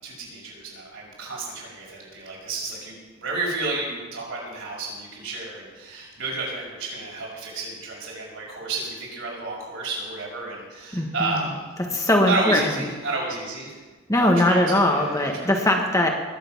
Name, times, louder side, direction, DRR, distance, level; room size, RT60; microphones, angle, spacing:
voice 1, 0.0-2.9 3.2-11.7 12.3-13.8 14.2-15.5, right 3 dB, 90° right, -3 dB, 6.0 m, -31 dB
voice 2, 10.9-11.5 11.8-12.8 14.1-16.1, left 1 dB, 15° left, 2 dB, 1.5 m, -21 dB
21.0 x 8.0 x 6.1 m, 1.3 s
head